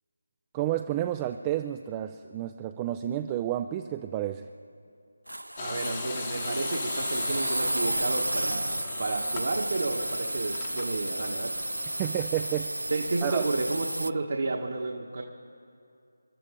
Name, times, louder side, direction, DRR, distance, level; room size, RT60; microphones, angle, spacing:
voice 1, 0.5-4.5 12.0-12.7 13.2-13.5, right 12 dB, 15° right, 8 dB, 0.4 m, -30 dB
sound 1, 5.3-14.1, right 1 dB, 90° right, 0.4 m, -32 dB
sound 2, 5.6-12.6, left 6 dB, 25° left, 1.0 m, -41 dB
voice 2, 5.6-11.5 11.8-12.0 12.9-15.2, right 3 dB, 55° right, 1 dB, 1.4 m, -31 dB
29.0 x 12.0 x 3.7 m, 2.5 s
figure-of-eight pair, 160°, 0 cm